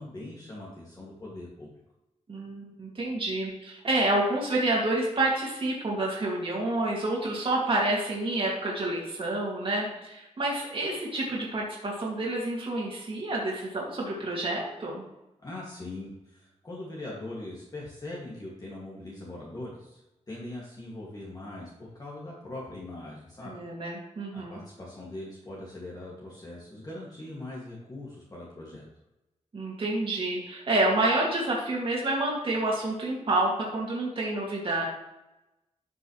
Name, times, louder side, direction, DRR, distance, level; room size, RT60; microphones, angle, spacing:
voice 1, 0.0-1.7 15.4-23.6 24.3-28.9, left 2 dB, 30° left, -5 dB, 2.2 m, -41 dB
voice 2, 2.3-15.0 23.4-24.6 29.5-34.9, right 2 dB, 45° right, -4 dB, 2.3 m, -28 dB
11.5 x 6.0 x 3.2 m, 0.96 s
wide cardioid pair, 120°, 12 cm